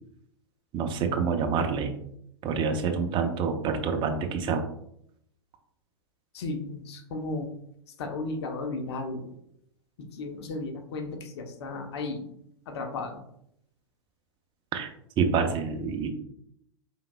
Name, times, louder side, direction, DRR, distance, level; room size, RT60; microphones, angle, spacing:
voice 1, 0.7-1.9 2.4-4.6 14.7-16.1, right 5 dB, 35° right, 6 dB, 0.7 m, -27 dB
voice 2, 6.3-7.5 8.0-9.3 10.0-12.2 12.7-13.2, left 3 dB, 65° left, 4 dB, 0.8 m, -34 dB
4.4 x 3.7 x 2.2 m, 0.73 s
hypercardioid pair, 105°, 15 cm